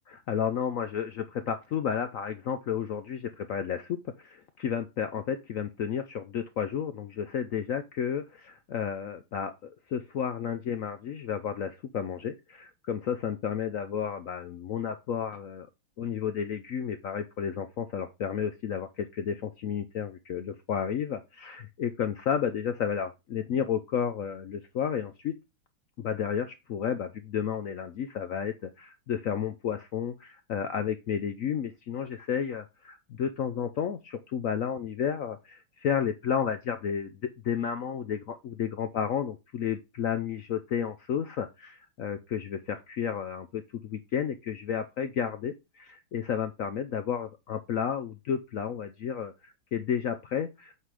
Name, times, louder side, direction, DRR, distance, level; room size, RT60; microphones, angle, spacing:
voice 1, 0.1-15.7 16.0-25.4 26.0-50.7, left 8 dB, 75° left, 9 dB, 0.7 m, -32 dB
8.1 x 3.9 x 4.8 m, 0.24 s
omnidirectional pair, 2.1 m